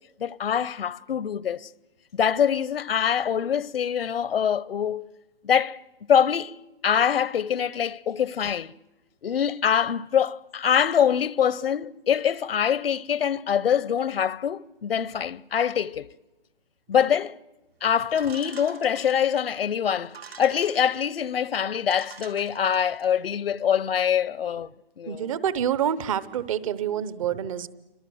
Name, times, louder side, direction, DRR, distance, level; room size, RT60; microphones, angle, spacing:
voice 1, 0.2-1.7 2.1-5.1 5.4-5.8 6.1-6.6 6.8-8.7 9.2-16.1 16.9-17.3 17.8-24.7 25.0-25.3, left 8 dB, 70° left, 0.9 m, -24 dB
sound 1, 18.2-19.5 20.0-21.1 21.6-21.7 21.9-23.1, right 6 dB, 80° right, 4.6 m, -46 dB
voice 2, 25.1-27.7, right 9 dB, 35° right, 1.0 m, -27 dB
28.5 x 25.5 x 7.8 m
hypercardioid pair, 155°, 30 cm